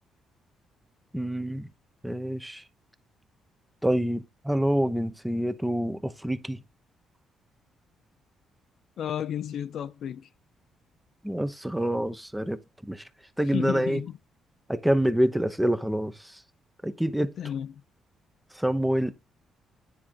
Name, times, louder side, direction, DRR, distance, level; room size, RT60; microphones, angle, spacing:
voice 1, 1.1-1.7 2.0-2.6 3.8-6.6 11.2-13.0 13.4-14.0 14.7-16.4 16.8-17.5 18.5-19.1, right 1 dB, 5° right, 0.8 m, -27 dB
voice 2, 9.0-10.3 13.5-14.1 17.4-17.7, left 9 dB, 65° left, 0.6 m, -32 dB
9.9 x 3.7 x 4.5 m
cardioid pair, 90°, 0 cm